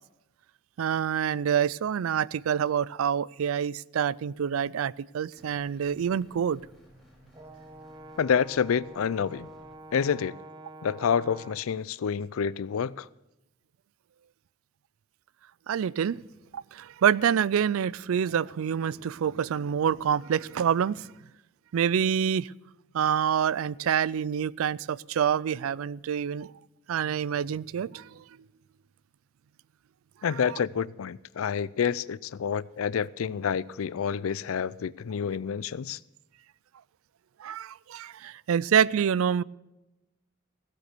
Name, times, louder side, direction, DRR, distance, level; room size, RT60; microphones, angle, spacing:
voice 1, 0.8-6.6 15.7-16.2 16.5-21.1 21.7-22.5 22.9-26.5 26.9-28.2 30.3-30.6 37.4-39.4, right 8 dB, 90° right, 0.4 m, -27 dB
sound 1, 5.4-9.8, equal, ahead, 3.5 m, -56 dB
Brass instrument, 7.3-11.7, right 1 dB, 20° right, 0.8 m, -47 dB
voice 2, 8.2-9.5 9.9-10.4 10.8-13.1 30.2-36.0, left 7 dB, 85° left, 0.4 m, -28 dB
16.5 x 8.1 x 6.6 m
head